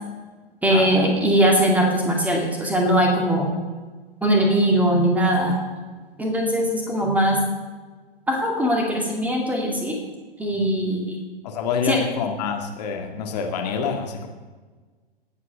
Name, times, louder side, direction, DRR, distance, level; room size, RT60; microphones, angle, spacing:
voice 1, 0.6-3.5 4.2-5.6 6.2-7.4 8.3-10.0 10.4-11.2 11.9-12.0, right 1 dB, 5° right, 0 dB, 2.3 m, -20 dB
voice 2, 11.4-14.3, left 6 dB, 45° left, 3 dB, 2.1 m, -27 dB
18.0 x 8.2 x 6.5 m, 1.3 s
figure-of-eight pair, 110°, 30 cm